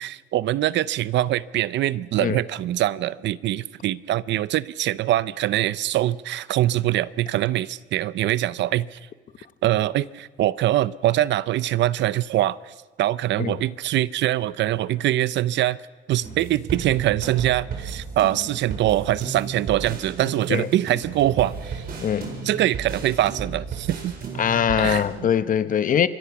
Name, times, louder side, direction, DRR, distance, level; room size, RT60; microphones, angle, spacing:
voice 1, 0.0-9.0 9.6-15.8 16.1-21.8 22.4-24.1 24.8-25.3, right 14 dB, 60° right, 0.6 m, -23 dB
sound 1, 16.2-25.0, right 5 dB, 45° right, 4.7 m, -34 dB
voice 2, 22.0-22.4 24.4-26.1, left 8 dB, 40° left, 0.9 m, -22 dB
26.5 x 23.0 x 6.0 m
cardioid pair, 135°, 21 cm